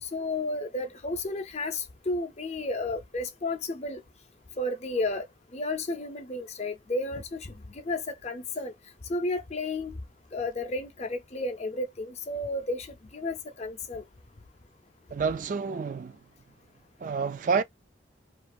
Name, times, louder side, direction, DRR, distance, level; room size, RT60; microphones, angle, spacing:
voice 1, 0.0-4.0 4.6-5.3 5.5-8.7 9.1-10.0 10.3-14.0, left 2 dB, 35° left, 0.5 m, -32 dB
voice 2, 15.1-16.2 17.0-17.6, right 5 dB, 40° right, 0.3 m, -28 dB
2.7 x 2.5 x 2.4 m
head